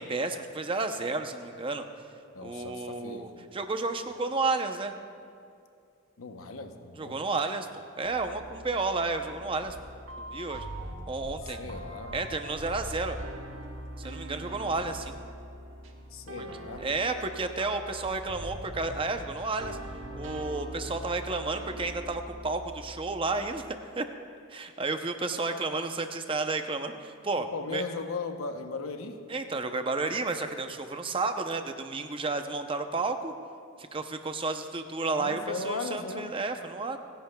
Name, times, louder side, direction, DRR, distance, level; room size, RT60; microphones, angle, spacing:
voice 1, 0.0-1.9 2.4-4.9 6.9-9.8 10.2-10.6 11.1-11.6 12.1-13.2 14.0-15.2 16.4-16.5 16.8-19.8 20.1-24.0 24.5-27.8 29.3-33.3 33.9-37.0, right 3 dB, 25° right, 7 dB, 0.6 m, -32 dB
voice 2, 2.3-3.5 6.2-7.2 11.4-12.2 16.1-16.8 27.3-29.2 35.1-36.3, left 4 dB, 85° left, 6 dB, 0.8 m, -37 dB
sound 1, 8.0-23.7, right 1 dB, 80° right, 1.2 m, -42 dB
30.0 x 10.5 x 2.3 m, 2.4 s
head